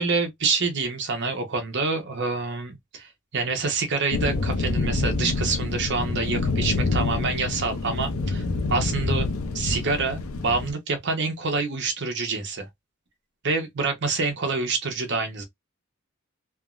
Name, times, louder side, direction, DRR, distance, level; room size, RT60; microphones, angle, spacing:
voice 1, 0.0-8.4 8.7-9.3 9.5-12.7 13.4-15.4, right 4 dB, 55° right, 0.8 m, -27 dB
sound 1, 4.1-10.7, left 3 dB, 85° left, 0.6 m, -27 dB
3.3 x 2.0 x 2.3 m
head